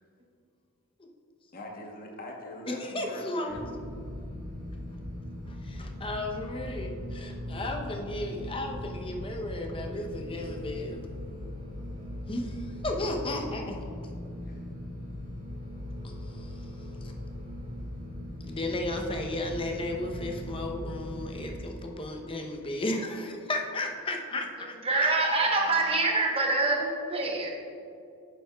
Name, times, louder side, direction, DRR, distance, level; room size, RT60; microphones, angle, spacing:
voice 1, 1.5-3.6 10.3-10.6 14.4-14.6, left 1 dB, 40° left, 0 dB, 1.0 m, -43 dB
voice 2, 2.7-3.6 5.5-11.0 12.3-13.8 16.0-16.7 17.0-17.1 18.5-25.1 25.5-25.8, left 1 dB, 25° left, 2 dB, 0.7 m, -34 dB
sound 1, 3.5-21.5, left 1 dB, 45° right, 1.7 m, -39 dB
voice 3, 24.6-27.5, right 3 dB, 25° right, 0 dB, 1.0 m, -26 dB
9.6 x 7.4 x 2.3 m, 2.5 s
head